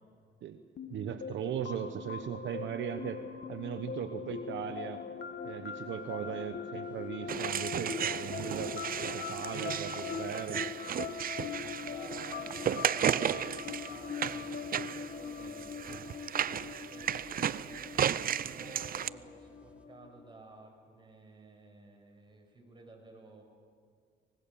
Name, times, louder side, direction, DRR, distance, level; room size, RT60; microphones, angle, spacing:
sound 1, 0.8-20.3, left 6 dB, 55° left, 1.7 m, -41 dB
voice 1, 0.9-3.2 3.5-5.0 5.4-8.9 9.1-10.7, right 9 dB, 70° right, 8 dB, 1.1 m, -38 dB
sound 2, 5.8-19.9, equal, 5° right, 2.3 m, -63 dB
sound 3, 7.3-19.1, right 9 dB, 45° right, 0.6 m, -34 dB
voice 2, 11.4-15.8 16.8-23.4, right 2 dB, 25° right, 2 dB, 6.4 m, -54 dB
25.0 x 20.5 x 7.1 m, 2.1 s
cardioid pair, 90°, 20 cm